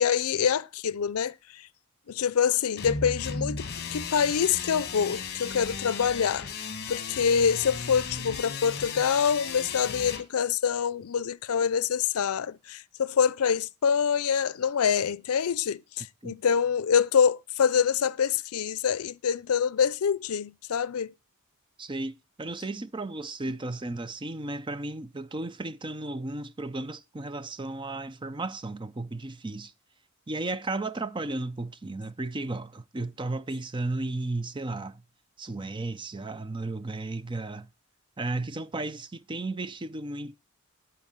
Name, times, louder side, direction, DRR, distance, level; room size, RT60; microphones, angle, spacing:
voice 1, 0.0-1.7 2.1-6.5 6.9-21.1, left 7 dB, 85° left, 0.5 m, -26 dB
sound 1, 2.8-10.2, left 5 dB, 50° left, 1.3 m, -35 dB
voice 2, 21.8-29.7 30.3-35.0 35.4-37.7 38.2-40.3, right 2 dB, 20° right, 0.5 m, -34 dB
11.0 x 4.6 x 7.6 m
head